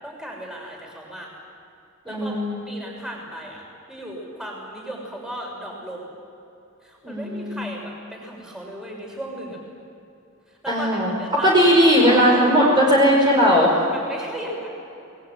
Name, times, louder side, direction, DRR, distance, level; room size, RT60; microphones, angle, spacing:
voice 1, 0.0-1.3 2.0-2.4 2.7-6.1 6.8-9.6 10.6-12.6 13.9-14.8, right 1 dB, 5° right, -1 dB, 6.5 m, -36 dB
voice 2, 2.1-2.6 7.0-7.7 10.7-11.1 11.4-13.7, equal, 20° right, -3 dB, 5.3 m, -17 dB
28.0 x 21.5 x 9.4 m, 2.8 s
head